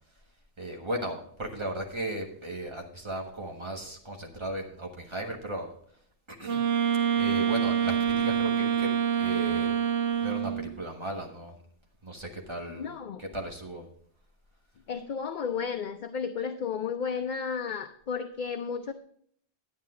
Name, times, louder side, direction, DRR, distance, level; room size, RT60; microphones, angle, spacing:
voice 1, 0.6-5.7 6.3-6.6 7.1-9.7 10.2-11.6 12.0-12.9 13.2-13.9, right 1 dB, 25° right, 1 dB, 1.5 m, -36 dB
Wind instrument woodwind instrument, 6.4-10.8, right 8 dB, 80° right, 1.2 m, -26 dB
voice 2, 12.8-13.2 14.9-18.9, left 6 dB, 50° left, 7 dB, 0.6 m, -33 dB
10.5 x 9.6 x 3.7 m, 0.63 s
omnidirectional pair, 1.2 m